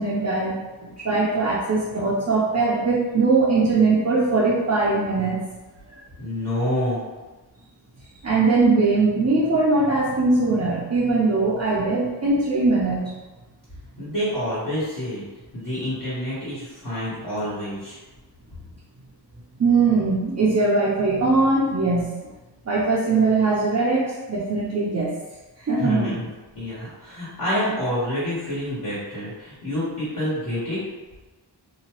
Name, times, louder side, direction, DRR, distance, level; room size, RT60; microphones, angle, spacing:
voice 1, 0.0-5.4 5.9-6.0 8.2-13.0 19.6-22.2 22.7-25.1 25.6-26.1, right 3 dB, 40° right, -7 dB, 0.6 m, -21 dB
voice 2, 6.2-7.0 14.0-15.2 15.5-18.0 25.8-26.3 26.5-30.8, equal, 50° left, -11 dB, 1.4 m, -27 dB
2.8 x 2.2 x 3.0 m, 1.2 s
wide cardioid pair, 60°, 43 cm